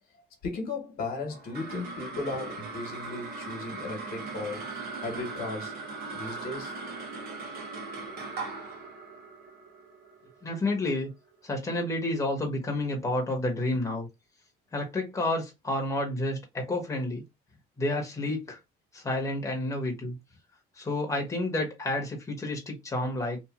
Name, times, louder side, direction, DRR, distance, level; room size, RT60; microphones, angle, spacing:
voice 1, 0.4-5.8 6.1-6.8, left 3 dB, 65° left, 1.2 m, -36 dB
sound 1, 1.3-11.9, right 3 dB, 65° right, 1.1 m, -39 dB
voice 2, 10.4-11.1 11.4-14.1 14.7-17.2 17.8-18.6 18.9-20.1 20.8-23.4, left 2 dB, 20° left, 1.0 m, -30 dB
2.9 x 2.5 x 2.4 m
cardioid pair, 110°, 17 cm